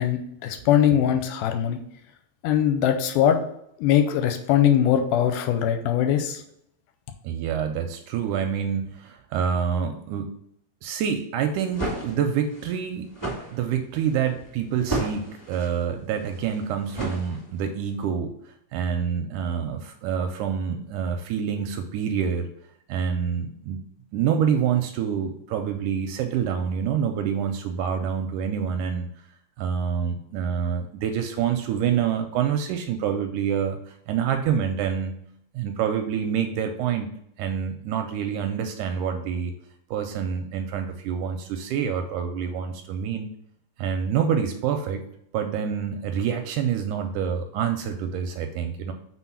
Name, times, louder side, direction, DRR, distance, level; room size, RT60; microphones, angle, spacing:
voice 1, 0.0-1.8 2.4-3.4 3.8-6.4, left 10 dB, 80° left, 7 dB, 2.1 m, -21 dB
voice 2, 7.2-10.3 10.8-13.1 13.5-18.3 18.7-22.5 22.9-23.8 24.1-29.1 29.6-35.1 35.5-37.1 37.4-39.5 39.9-43.3 43.8-45.0 45.3-48.9, right 7 dB, 80° right, 5 dB, 1.9 m, -27 dB
sound 1, 11.5-17.8, right 2 dB, 10° left, 1.1 m, -34 dB
4.5 x 4.2 x 5.7 m, 0.72 s
omnidirectional pair, 3.9 m